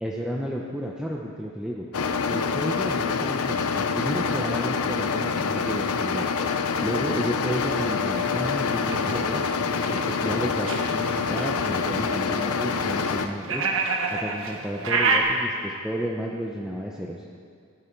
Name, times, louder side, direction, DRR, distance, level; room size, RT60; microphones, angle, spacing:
voice 1, 0.0-1.8 2.3-6.3 6.8-9.4 9.9-13.6 14.1-17.2, equal, 5° right, -3 dB, 0.9 m, -32 dB
sound 1, 1.9-13.3, left 5 dB, 85° left, 0.7 m, -26 dB
sound 2, 8.0-15.2, right 4 dB, 60° right, 1.4 m, -29 dB
17.0 x 12.5 x 4.6 m, 2.2 s
head